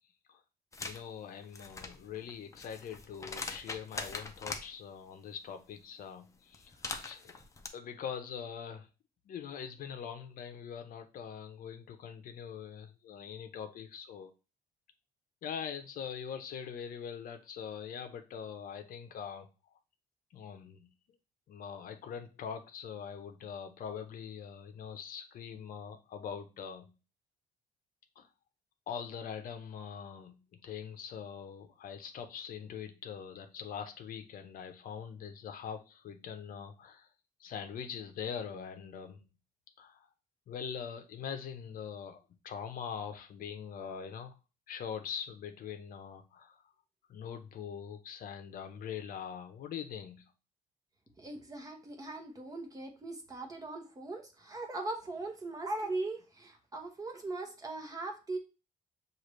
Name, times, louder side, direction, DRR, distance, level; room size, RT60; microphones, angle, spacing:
sound 1, 0.7-1.0 1.4-4.7 6.5-7.7, left 3 dB, 20° left, 0.5 m, -42 dB
voice 1, 0.8-7.4 7.7-8.9 9.3-14.3 15.4-19.5 20.3-20.9 21.5-26.9 28.2-28.3 28.9-30.4 30.6-37.1 37.4-39.2 39.8-40.1 40.5-42.2 42.4-44.3 44.7-46.6 47.1-50.3, left 7 dB, 60° left, 0.7 m, -43 dB
voice 2, 51.2-58.4, right 2 dB, 20° right, 0.9 m, -39 dB
6.5 x 2.5 x 3.1 m
cardioid pair, 150°, 16 cm